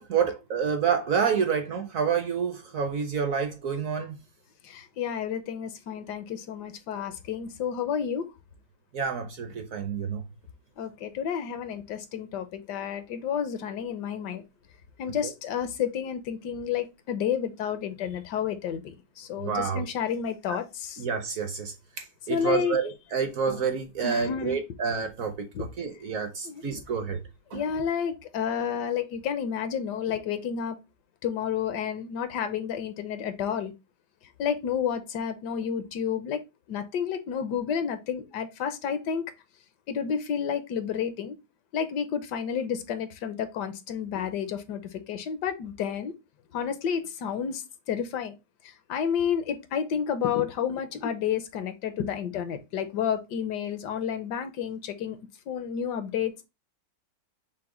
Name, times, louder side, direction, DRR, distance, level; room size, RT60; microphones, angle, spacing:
voice 1, 0.0-4.2 8.9-10.2 19.4-19.8 20.5-20.6 21.0-27.2 27.5-27.6, right 6 dB, 60° right, 0.9 m, -28 dB
voice 2, 4.6-8.3 10.8-14.4 15.0-21.0 22.3-22.8 24.0-24.6 25.5-25.7 26.4-26.8 27.5-30.8 31.2-33.7 34.4-36.4 36.7-39.3 39.9-41.3 41.7-46.1 46.5-48.3 48.6-55.2 55.5-56.5, left 8 dB, 75° left, 1.3 m, -30 dB
5.9 x 2.1 x 3.6 m
omnidirectional pair, 1.9 m